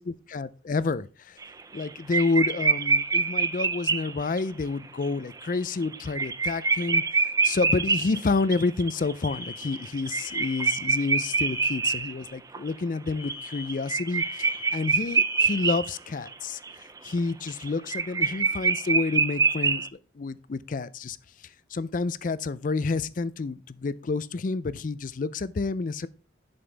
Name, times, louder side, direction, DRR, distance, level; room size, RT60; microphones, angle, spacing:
voice 1, 0.3-1.4 1.7-7.0 7.4-16.6 17.0-19.9 20.2-21.2 21.7-26.1, left 3 dB, 45° left, 0.4 m, -29 dB
sound 1, 1.4-1.9 2.1-4.4 5.0-5.1 5.4-5.5 5.8-12.7 13.1-16.0 16.3-16.4 16.6-19.9, right 4 dB, 20° right, 0.4 m, -26 dB
Alarm, 9.2-12.0 13.2-15.9, left 4 dB, 20° left, 1.3 m, -42 dB
11.0 x 5.2 x 3.3 m
head